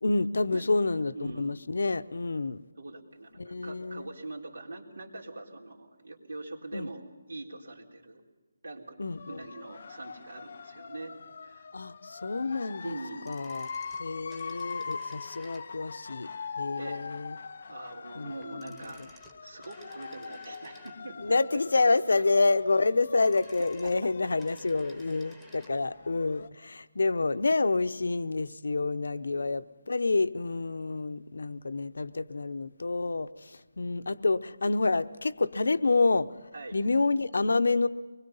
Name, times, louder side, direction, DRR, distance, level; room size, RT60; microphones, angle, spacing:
voice 1, 0.0-2.6 3.4-4.1 6.7-6.9 9.0-9.4 11.7-13.0 13.3-13.7 14.0-16.3 16.6-17.4 18.2-18.7 19.0-19.1 21.2-36.3 36.7-37.9, left 3 dB, 75° left, 12 dB, 0.9 m, -28 dB
voice 2, 1.1-1.6 2.8-8.2 8.6-11.1 11.4-11.7 12.8-13.4 16.8-17.1 17.7-19.0 19.4-21.4 23.6-23.9 29.4-29.5 36.5-36.8, right 2 dB, 80° right, -2 dB, 3.6 m, -43 dB
sound 1, 9.1-26.5, left 5 dB, 35° left, 0.6 m, -43 dB
sound 2, 13.1-16.0 18.4-21.3 22.9-25.8 26.0-26.1, left 1 dB, 5° right, 1.3 m, -56 dB
24.5 x 21.0 x 5.5 m, 1.3 s
hypercardioid pair, 180°, 0 cm